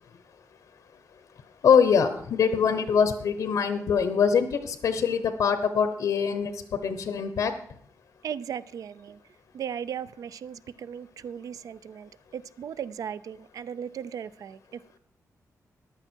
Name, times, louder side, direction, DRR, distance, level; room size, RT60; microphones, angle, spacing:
voice 1, 1.6-7.5, left 6 dB, 80° left, 10 dB, 1.0 m, -23 dB
voice 2, 8.2-9.2 9.5-15.0, right 8 dB, 75° right, 17 dB, 0.5 m, -37 dB
15.0 x 11.0 x 4.5 m, 0.65 s
wide cardioid pair, 175°, 6 cm